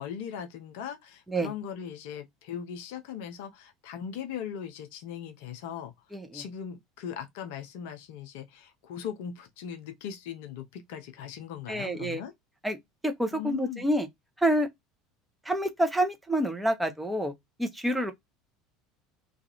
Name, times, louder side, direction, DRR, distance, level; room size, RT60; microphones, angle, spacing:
voice 1, 0.0-5.9 6.3-12.3 13.3-13.9, left 8 dB, 60° left, 0.6 m, -39 dB
voice 2, 11.7-12.2 12.6-12.8 13.0-14.1 14.4-14.7 15.5-17.3 17.6-18.1, right 1 dB, 5° right, 0.7 m, -27 dB
2.4 x 2.3 x 2.8 m
figure-of-eight pair, 70°, 0 cm